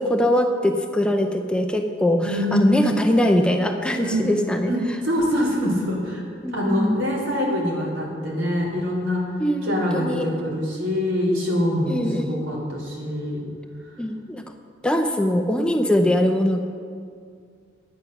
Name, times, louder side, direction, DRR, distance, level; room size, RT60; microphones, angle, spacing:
voice 1, 0.0-4.7 6.4-7.0 9.4-10.3 11.9-12.4 14.0-14.4 14.8-16.6, left 1 dB, 5° left, 5 dB, 0.4 m, -22 dB
voice 2, 2.2-2.7 4.0-4.3 4.7-6.2 6.5-9.2 9.6-13.4, equal, 75° right, -3 dB, 2.9 m, -24 dB
10.0 x 8.6 x 5.8 m, 2.2 s
head